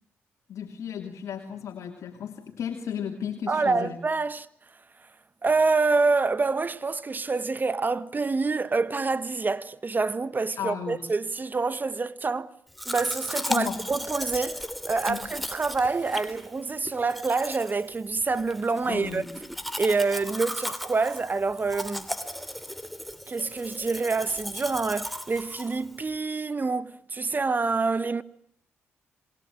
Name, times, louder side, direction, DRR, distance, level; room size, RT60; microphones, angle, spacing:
voice 1, 0.5-4.0 10.6-11.0 13.4-13.8 15.1-15.3 18.9-19.3, left 8 dB, 70° left, 3.0 m, -34 dB
voice 2, 3.5-4.5 5.4-12.5 12.8-19.2 19.8-22.1 23.3-28.2, right 4 dB, 35° right, 1.5 m, -27 dB
Domestic sounds home sounds, 12.8-26.2, equal, ahead, 2.9 m, -36 dB
27.0 x 22.0 x 9.1 m
supercardioid pair, 55°, 5 cm